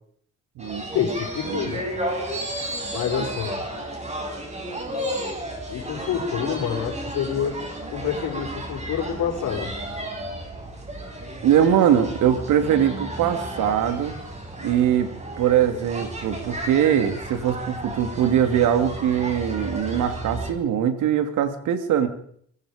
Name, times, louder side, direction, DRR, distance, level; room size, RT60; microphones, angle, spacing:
sound 1, 0.6-20.5, right 1 dB, 20° right, 7.1 m, -33 dB
voice 1, 0.9-1.8 2.9-3.6 5.7-7.6 7.9-9.7, left 8 dB, 80° left, 3 dB, 5.6 m, -27 dB
voice 2, 11.4-14.1 14.6-15.1 15.4-22.1, right 9 dB, 85° right, 9 dB, 2.7 m, -21 dB
24.5 x 23.0 x 5.1 m, 0.64 s
cardioid pair, 90°, 30 cm